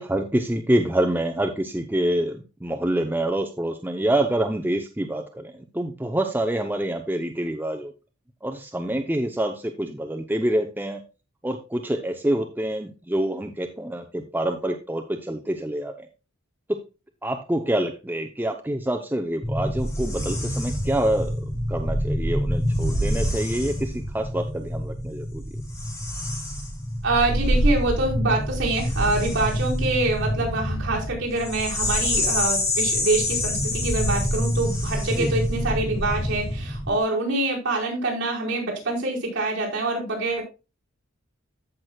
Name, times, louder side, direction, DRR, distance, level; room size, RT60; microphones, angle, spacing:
voice 1, 0.0-7.9 8.4-11.0 11.4-16.1 16.7-16.8 17.2-21.4 21.7-25.4 35.1-35.3, right 1 dB, 10° right, 4 dB, 0.7 m, -26 dB
sound 1, 19.4-37.0, equal, 15° left, 2.2 m, -26 dB
voice 2, 27.0-40.4, right 2 dB, 60° right, -4 dB, 4.6 m, -25 dB
14.5 x 6.1 x 2.3 m, 0.29 s
head